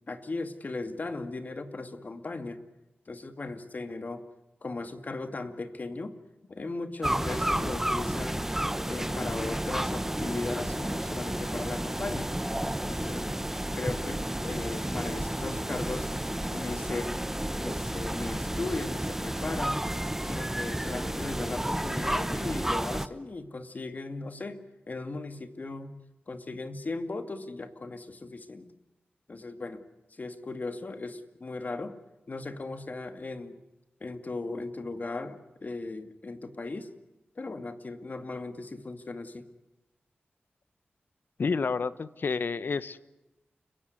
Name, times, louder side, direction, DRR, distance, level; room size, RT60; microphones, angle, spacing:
voice 1, 0.1-2.6 3.1-4.2 4.6-6.1 6.5-8.5 8.9-12.3 12.9-13.3 13.7-16.1 16.4-17.1 17.5-19.9 20.2-26.0 26.3-28.7 29.3-29.8 30.1-32.0 32.3-33.6 34.0-36.9 37.4-39.5, left 3 dB, 50° left, 9 dB, 2.3 m, -37 dB
sound 1, 7.0-23.1, right 1 dB, 10° right, 1.1 m, -31 dB
voice 2, 41.4-43.0, left 4 dB, 65° left, 16 dB, 1.1 m, -29 dB
30.0 x 17.0 x 9.6 m, 1.0 s
wide cardioid pair, 80°, 4 cm